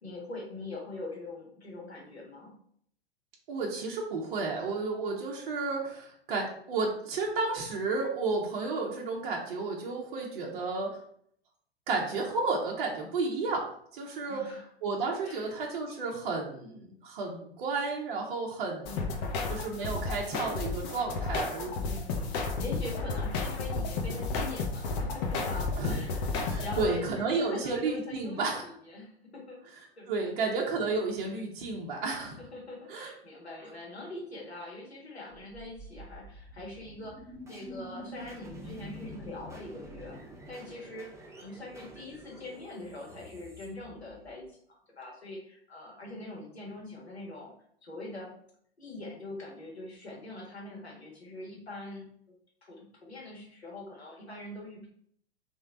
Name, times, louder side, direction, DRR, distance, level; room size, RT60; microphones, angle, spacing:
voice 1, 0.0-2.5 14.2-14.7 15.2-15.5 18.8-19.5 21.8-29.6 30.0-30.3 32.5-40.2 40.5-44.6 45.0-47.5 47.8-48.4 48.8-52.1 52.6-54.9, left 2 dB, 85° left, -2 dB, 1.7 m, -43 dB
voice 2, 3.5-10.9 11.9-13.7 13.9-14.4 14.8-19.0 19.5-21.9 25.8-26.0 26.5-28.6 30.1-32.4 32.9-33.1, right 3 dB, 55° right, 0 dB, 1.1 m, -32 dB
sound 1, 18.9-26.8, left 3 dB, 45° left, 0.9 m, -32 dB
sound 2, 35.3-44.5, equal, 10° right, 0.8 m, -47 dB
3.6 x 3.3 x 3.8 m, 0.65 s
figure-of-eight pair, 100°, 31 cm